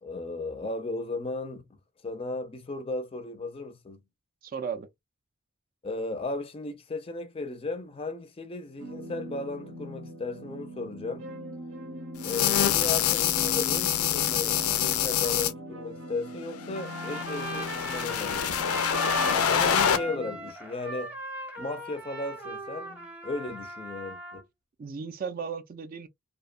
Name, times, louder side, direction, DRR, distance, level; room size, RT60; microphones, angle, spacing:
voice 1, 0.0-1.6 2.0-4.0 5.8-11.3 12.2-18.4 19.5-21.1 21.6-24.4, left 3 dB, 25° left, 0.4 m, -35 dB
voice 2, 4.4-4.9 19.7-20.0 24.8-26.1, right 6 dB, 40° right, 0.4 m, -36 dB
sound 1, 8.8-20.5, equal, 75° right, 0.7 m, -41 dB
sound 2, 12.2-15.5 16.6-20.0, left 9 dB, 85° left, 0.4 m, -26 dB
Trumpet, 16.7-24.4, right 2 dB, 10° right, 0.7 m, -37 dB
2.7 x 2.1 x 2.3 m
head